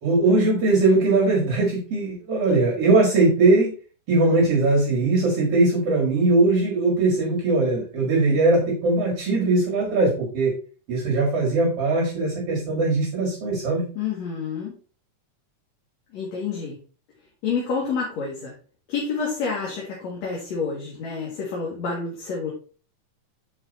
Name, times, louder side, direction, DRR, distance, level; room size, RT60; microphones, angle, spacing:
voice 1, 0.0-3.7 4.1-10.5 10.9-13.9, right 2 dB, 55° right, -2 dB, 2.6 m, -20 dB
voice 2, 14.0-14.7 16.1-16.8 17.4-18.5 18.9-22.5, left 5 dB, 65° left, -3 dB, 2.7 m, -28 dB
7.5 x 4.7 x 4.0 m, 0.38 s
omnidirectional pair, 3.5 m